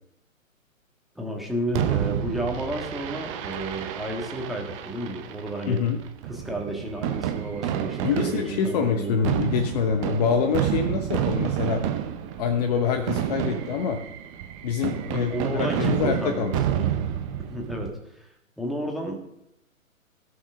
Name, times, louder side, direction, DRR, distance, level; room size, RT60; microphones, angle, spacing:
voice 1, 1.1-5.8 6.2-9.3 10.2-10.4 15.1-16.9 17.5-17.9 18.2-18.3 18.6-19.3, right 1 dB, ahead, 0 dB, 1.6 m, -32 dB
Fireworks, 1.7-17.9, right 10 dB, 25° right, 0.9 m, -30 dB
voice 2, 5.7-6.0 8.0-11.8 12.4-14.0 14.6-16.6, left 6 dB, 30° left, 5 dB, 1.0 m, -25 dB
16.0 x 6.3 x 6.1 m, 0.84 s
figure-of-eight pair, 130°, 42 cm